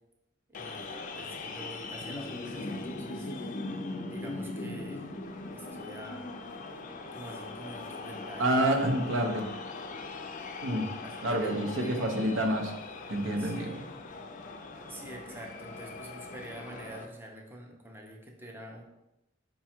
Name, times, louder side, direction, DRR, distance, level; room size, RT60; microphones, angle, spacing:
sound 1, 0.5-17.1, left 3 dB, 40° left, 0.4 m, -40 dB
voice 1, 0.5-3.3 4.1-5.1 5.5-6.3 6.9-8.8 11.0-12.1 13.4-13.8 14.9-18.8, right 1 dB, 10° right, 0 dB, 0.5 m, -46 dB
voice 2, 8.4-9.4 10.6-10.9 11.2-12.7 13.1-13.8, right 1 dB, 75° right, 3 dB, 0.7 m, -28 dB
5.3 x 2.3 x 4.3 m, 0.93 s
head